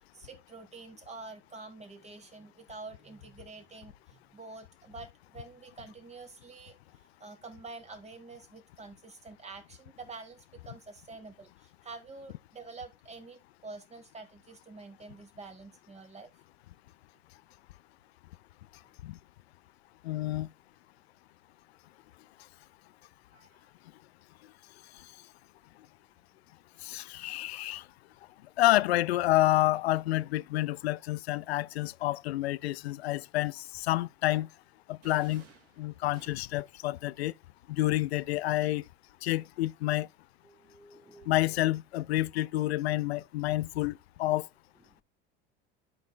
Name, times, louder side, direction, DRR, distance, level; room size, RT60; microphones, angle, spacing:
voice 1, 0.1-16.3 23.3-23.7 40.4-41.6 44.9-45.0, right 3 dB, 20° right, 2.5 m, -48 dB
voice 2, 20.0-20.5 26.8-27.8 28.6-34.5 34.9-35.4 35.8-37.3 37.7-38.8 39.2-40.1 41.3-43.9 44.2-44.5, left 16 dB, 85° left, 0.5 m, -29 dB
sound 1, 35.0-36.8, right 5 dB, 50° right, 3.0 m, -57 dB
12.0 x 5.4 x 2.4 m
hypercardioid pair, 80°, 31 cm